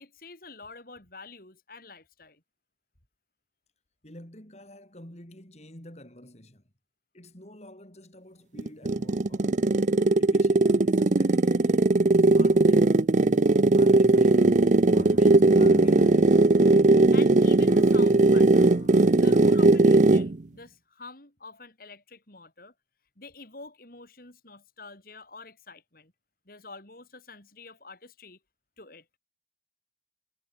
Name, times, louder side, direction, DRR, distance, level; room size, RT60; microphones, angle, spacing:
voice 1, 0.0-2.4 17.1-18.7 19.1-22.7 23.2-26.1 26.4-28.4 28.8-29.0, left 3 dB, 55° left, 5.0 m, -47 dB
voice 2, 4.0-6.6 7.1-9.7 10.2-13.1 13.7-16.6, left 1 dB, 40° left, 4.2 m, -47 dB
sound 1, 8.6-20.3, right 2 dB, 45° right, 0.6 m, -19 dB
sound 2, 15.0-17.3 17.7-19.9, left 1 dB, 75° left, 2.2 m, -45 dB
head